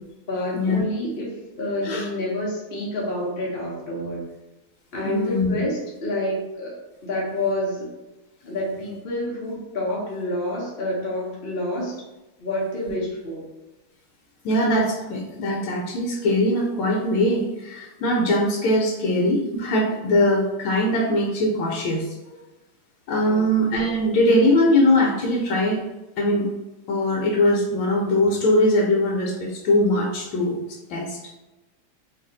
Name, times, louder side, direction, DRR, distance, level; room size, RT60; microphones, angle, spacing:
voice 1, 0.3-1.3 1.6-4.2 4.9-7.9 8.4-12.0 12.4-13.4 23.2-23.5, left 1 dB, 50° left, -5 dB, 0.6 m, -28 dB
voice 2, 5.0-5.5 14.4-22.0 23.1-25.8 26.2-26.5 26.9-30.6 30.9-31.2, left 1 dB, 75° left, -2 dB, 1.4 m, -21 dB
3.4 x 2.5 x 3.8 m, 1.0 s
omnidirectional pair, 2.3 m